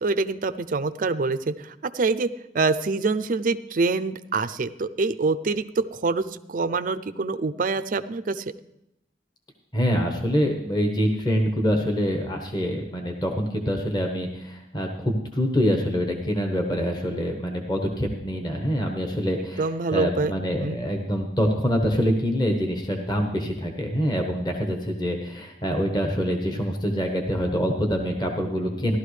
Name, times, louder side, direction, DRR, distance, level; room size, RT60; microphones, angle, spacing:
voice 1, 0.0-2.3 2.5-8.4 19.6-20.3 20.6-20.8, right 3 dB, 50° right, 12 dB, 0.5 m, -25 dB
voice 2, 9.7-29.0, equal, 25° left, 3 dB, 1.1 m, -25 dB
15.5 x 12.0 x 3.3 m, 0.83 s
head